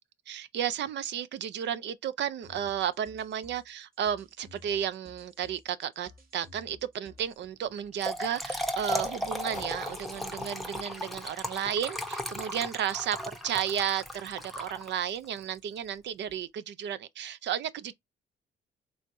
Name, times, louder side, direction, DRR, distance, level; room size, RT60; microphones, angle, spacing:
voice 1, 0.3-17.9, right 9 dB, 65° right, 0.4 m, -33 dB
sound 1, 2.4-7.5, left 1 dB, 50° right, 1.2 m, -55 dB
Trickle dribble / Fill (with liquid), 7.8-15.2, equal, ahead, 0.7 m, -36 dB
sound 2, 9.5-12.2, left 5 dB, 35° left, 0.6 m, -52 dB
3.4 x 3.1 x 2.6 m
cardioid pair, 90°, 20 cm